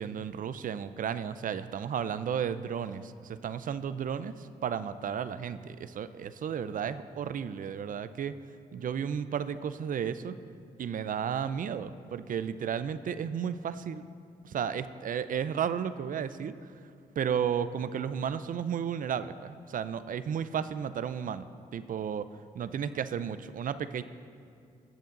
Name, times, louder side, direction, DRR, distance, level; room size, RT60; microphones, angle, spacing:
voice 1, 0.0-8.4 8.7-10.4 10.8-14.0 14.4-16.5 17.2-21.5 21.7-22.3 22.5-24.0, right 8 dB, 55° right, 13 dB, 0.6 m, -33 dB
20.5 x 7.6 x 4.0 m, 2.4 s
supercardioid pair, 60°, 16 cm